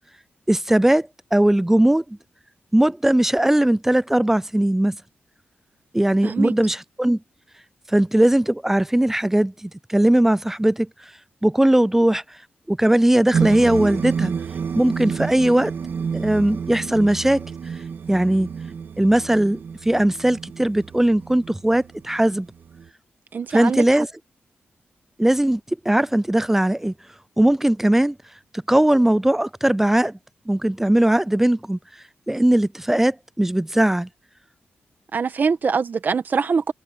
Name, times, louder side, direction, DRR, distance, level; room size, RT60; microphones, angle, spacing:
voice 1, 0.5-2.0 2.7-5.0 5.9-7.2 7.9-10.9 11.4-12.2 12.7-14.3 14.8-15.7 16.1-17.5 18.1-18.5 19.0-22.5 23.5-24.1 25.2-25.6 25.9-26.9 27.4-28.2 28.7-30.2 30.5-31.8 32.3-34.1, right 1 dB, 10° right, 0.3 m, -19 dB
voice 2, 6.2-6.5 23.3-23.8 35.1-36.7, right 5 dB, 50° right, 1.4 m, -23 dB
sound 1, 13.3-22.9, right 6 dB, 70° right, 2.1 m, -30 dB
cardioid pair, 95°, 4 cm